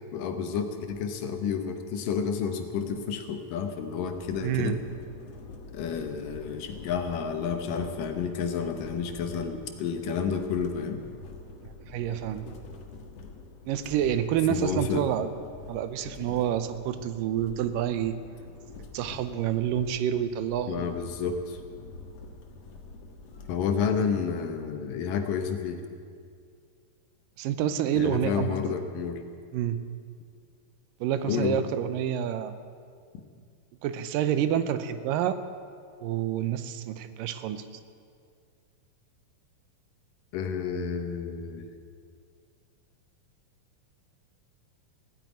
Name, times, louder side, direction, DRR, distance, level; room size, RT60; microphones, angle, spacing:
voice 1, 0.1-4.8 5.7-11.0 14.5-15.1 20.7-21.6 23.5-25.8 27.9-29.2 31.3-31.6 40.3-41.7, left 6 dB, 80° left, 6 dB, 2.8 m, -30 dB
sound 1, 4.0-24.0, left 3 dB, 60° left, 2.2 m, -46 dB
voice 2, 4.4-4.8 11.9-12.4 13.6-15.3 15.7-18.2 18.9-20.9 27.4-28.7 29.5-29.8 31.0-32.6 33.8-35.4 36.0-37.6, right 10 dB, 85° right, 12 dB, 2.4 m, -28 dB
16.0 x 9.2 x 9.6 m, 2.2 s
omnidirectional pair, 3.9 m